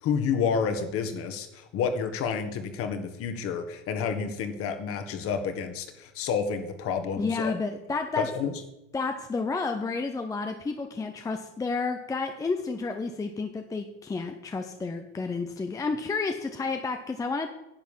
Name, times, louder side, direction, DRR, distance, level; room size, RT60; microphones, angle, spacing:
voice 1, 0.0-7.5 8.2-8.5, left 6 dB, 40° left, 8 dB, 1.8 m, -29 dB
voice 2, 7.2-8.3 8.9-17.5, left 4 dB, 10° left, 6 dB, 0.7 m, -31 dB
10.5 x 8.1 x 7.4 m, 0.91 s
supercardioid pair, 125°, 34 cm